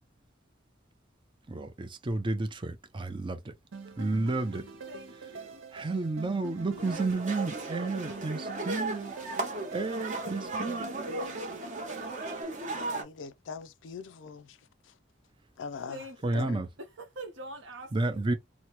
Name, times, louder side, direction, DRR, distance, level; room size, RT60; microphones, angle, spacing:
voice 1, 1.5-3.5 4.0-4.7 5.7-9.1 9.7-10.9 16.2-16.7 17.9-18.3, right 2 dB, 25° right, 0.5 m, -31 dB
sound 1, 3.7-12.4, right 4 dB, 85° right, 0.6 m, -45 dB
voice 2, 4.9-5.7 15.9-16.5 17.0-18.2, right 1 dB, 70° right, 1.0 m, -44 dB
sound 2, 6.8-13.0, right 2 dB, 40° right, 0.9 m, -36 dB
voice 3, 12.6-14.6 15.6-16.1 16.3-16.6, left 5 dB, 70° left, 0.4 m, -42 dB
2.9 x 2.1 x 2.9 m
head